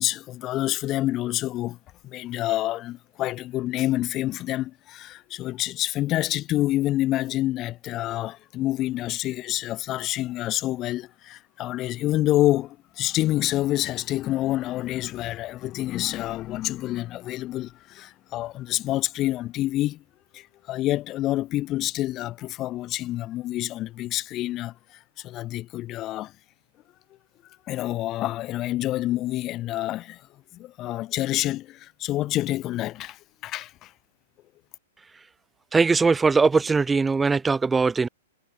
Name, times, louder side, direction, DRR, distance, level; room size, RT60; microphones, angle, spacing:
voice 1, 0.0-1.8 2.0-20.0 20.3-26.3 27.7-30.3 30.5-33.9, left 15 dB, 35° left, 1.3 m, -27 dB
voice 2, 35.7-38.1, right 4 dB, 10° right, 0.8 m, -20 dB
hypercardioid pair, 120°, 0 cm